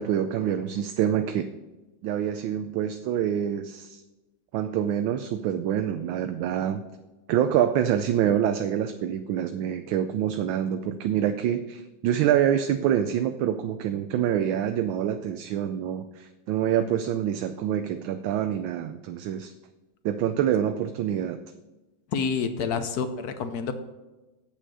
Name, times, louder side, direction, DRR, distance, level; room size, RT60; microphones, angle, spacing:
voice 1, 0.0-1.4 2.0-4.0 4.5-6.8 7.3-19.5 20.0-21.4, right 10 dB, 80° right, 8 dB, 1.4 m, -26 dB
voice 2, 22.1-23.7, left 5 dB, 60° left, 9 dB, 1.1 m, -28 dB
8.5 x 7.3 x 6.3 m, 1.1 s
omnidirectional pair, 2.2 m